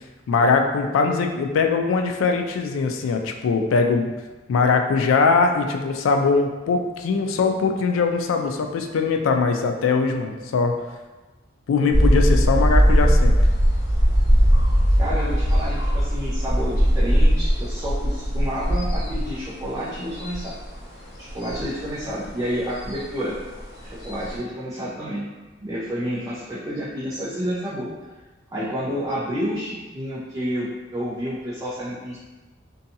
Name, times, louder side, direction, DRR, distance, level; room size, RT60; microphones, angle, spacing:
voice 1, 0.3-4.1 4.5-10.7 11.7-13.3, left 4 dB, 85° left, 4 dB, 0.3 m, -21 dB
sound 1, 11.9-24.4, equal, 65° left, 1.3 m, -20 dB
voice 2, 15.0-20.5 21.2-23.3 23.8-25.3 25.6-27.9 28.5-32.2, equal, 20° right, -9 dB, 0.4 m, -29 dB
2.6 x 2.2 x 2.6 m, 1.2 s
head